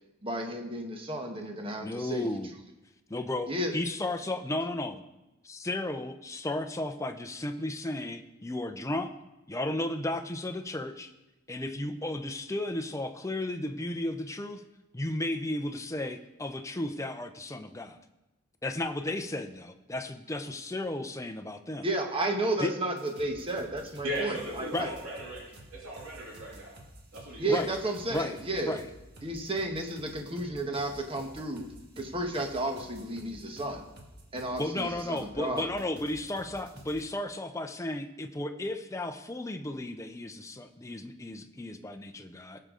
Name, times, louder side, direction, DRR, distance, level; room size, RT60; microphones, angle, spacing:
voice 1, 0.2-2.3 3.5-3.7 21.8-24.9 27.4-28.8 29.2-31.7 32.0-33.8 34.3-35.7, right 1 dB, 25° right, 3 dB, 1.2 m, -32 dB
voice 2, 1.8-2.5 3.1-5.0 5.4-9.1 9.5-11.1 11.5-14.6 14.9-18.0 18.6-21.8 22.6-22.7 24.7-25.0 27.5-27.7 28.1-28.3 28.7-28.8 34.6-42.6, left 1 dB, 15° left, 7 dB, 0.6 m, -34 dB
sound 1, 23.0-37.0, right 1 dB, 50° right, 1.7 m, -51 dB
voice 3, 24.0-25.4 25.7-26.8 27.1-27.7, equal, 75° right, -6 dB, 2.9 m, -37 dB
18.0 x 6.7 x 3.8 m, 0.99 s
head